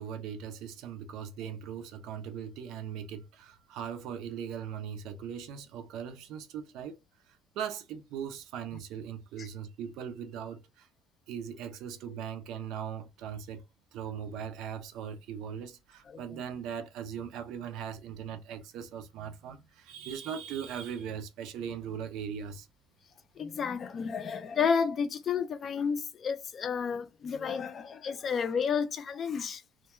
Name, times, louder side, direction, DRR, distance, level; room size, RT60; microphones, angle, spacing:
voice 1, 0.0-7.0 7.3-10.9 11.3-13.6 13.9-22.7, right 8 dB, 70° right, 0.5 m, -39 dB
voice 2, 16.1-16.4 23.4-29.6, left 6 dB, 35° left, 0.4 m, -31 dB
2.2 x 2.2 x 2.9 m
cardioid pair, 135°, 0 cm